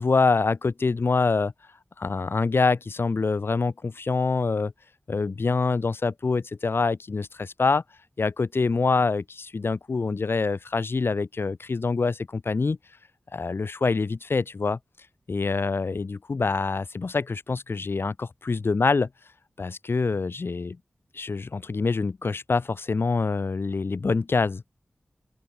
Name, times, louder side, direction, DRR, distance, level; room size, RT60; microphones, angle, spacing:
voice 1, 0.0-1.5 2.0-4.7 5.1-7.8 8.2-12.8 13.3-14.8 15.3-19.1 19.6-20.8 21.1-24.6, left 4 dB, 65° left, 6.7 m, -25 dB
open air
wide cardioid pair, 65°, 4 cm